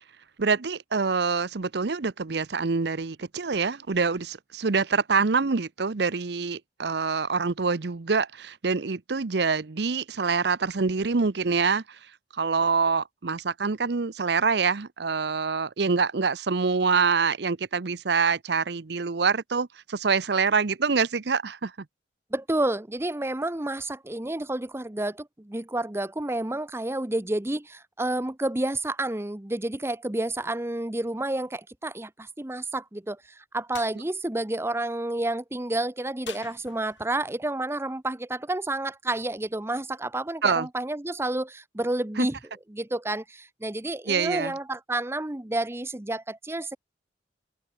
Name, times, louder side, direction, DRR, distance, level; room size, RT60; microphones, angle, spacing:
voice 1, 0.4-11.8 12.4-21.7 40.4-40.7 42.2-42.3 44.1-44.5, right 5 dB, 60° right, 0.7 m, -25 dB
voice 2, 22.3-42.4 42.7-46.8, right 1 dB, 15° right, 0.8 m, -30 dB
sound 1, 33.7-34.0 36.2-37.2, left 8 dB, 85° left, 2.6 m, -44 dB
head